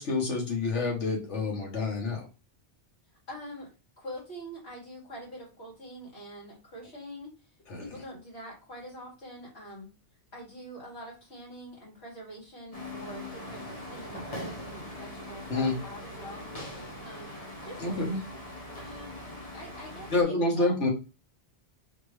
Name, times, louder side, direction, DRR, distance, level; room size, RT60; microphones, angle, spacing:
voice 1, 0.0-2.3 7.7-7.8 15.5-15.7 17.8-18.2 20.1-20.9, left 3 dB, 85° left, 0 dB, 1.7 m, -28 dB
voice 2, 3.3-3.7 4.0-7.3 7.8-9.9 10.3-16.5 16.7-18.0 18.8-19.2 19.5-20.7, equal, 65° left, -5 dB, 2.9 m, -45 dB
sound 1, 12.7-20.2, left 1 dB, 35° left, 1.0 m, -41 dB
4.2 x 3.0 x 3.2 m, 0.30 s
omnidirectional pair, 1.2 m